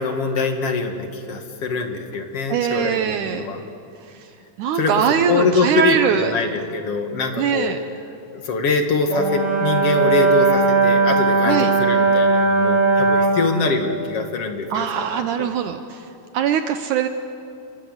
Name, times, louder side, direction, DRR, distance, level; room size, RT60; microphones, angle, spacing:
voice 1, 0.0-3.6 4.8-4.9 5.3-7.7 8.3-15.5, left 4 dB, 50° left, 5 dB, 2.6 m, -23 dB
voice 2, 2.5-3.5 4.1-4.3 4.6-6.4 7.4-7.8 11.5-11.7 14.7-16.1 16.3-17.1, right 8 dB, 75° right, 8 dB, 2.2 m, -22 dB
Brass instrument, 9.1-13.5, right 3 dB, 35° right, 5.8 m, -18 dB
30.0 x 23.0 x 8.1 m, 2.5 s
omnidirectional pair, 3.8 m